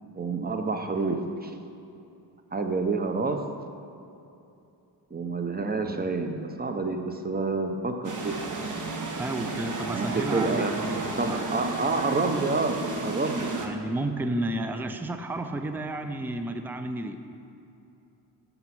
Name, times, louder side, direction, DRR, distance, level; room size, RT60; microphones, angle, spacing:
voice 1, 0.1-1.5 2.5-3.4 5.1-8.4 9.9-13.5, right 3 dB, 25° right, 5 dB, 0.7 m, -28 dB
sound 1, 8.0-13.7, right 3 dB, 50° right, 1.0 m, -33 dB
voice 2, 9.2-11.5 13.6-17.3, right 1 dB, 5° right, 8 dB, 0.4 m, -32 dB
8.0 x 5.3 x 5.9 m, 2.7 s
cardioid pair, 75°, 40 cm